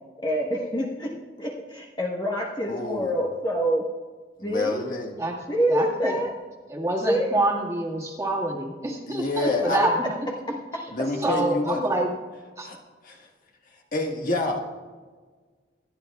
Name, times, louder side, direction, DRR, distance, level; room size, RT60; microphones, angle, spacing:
voice 1, 0.2-1.1 1.4-3.9 4.4-4.8 5.5-6.3 7.1-7.3, equal, 25° left, -3 dB, 1.2 m, -26 dB
voice 2, 2.7-3.2 4.4-5.1 9.1-9.8 10.9-11.8 12.6-12.8 13.1-13.3 13.9-14.6, left 2 dB, 50° left, 0 dB, 1.6 m, -28 dB
voice 3, 5.7-6.2 6.7-10.2 10.7-10.9 11.2-12.2 12.6-12.7, right 2 dB, 15° right, -1 dB, 1.9 m, -26 dB
26.5 x 9.9 x 2.4 m, 1.4 s
head